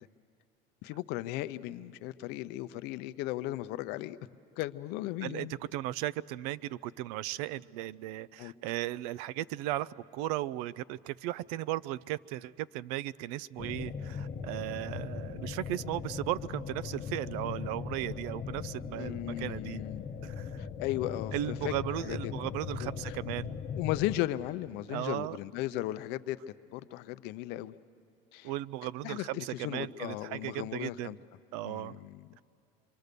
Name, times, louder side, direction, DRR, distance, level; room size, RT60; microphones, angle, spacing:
voice 1, 0.8-4.2 4.6-5.5 8.4-8.5 18.9-20.0 20.6-21.7 22.0-22.3 22.8-23.2 23.8-26.4 26.7-27.8 28.3-28.5 29.0-31.2 31.6-32.3, left 16 dB, 60° left, 13 dB, 0.6 m, -36 dB
voice 2, 5.2-19.8 20.2-20.6 21.3-23.6 24.9-25.4 28.4-31.2 31.5-32.0, right 14 dB, 90° right, 22 dB, 0.5 m, -36 dB
sound 1, 13.6-24.2, left 6 dB, 30° left, 0.9 m, -39 dB
25.5 x 24.0 x 6.8 m, 2.7 s
cardioid pair, 155°, 19 cm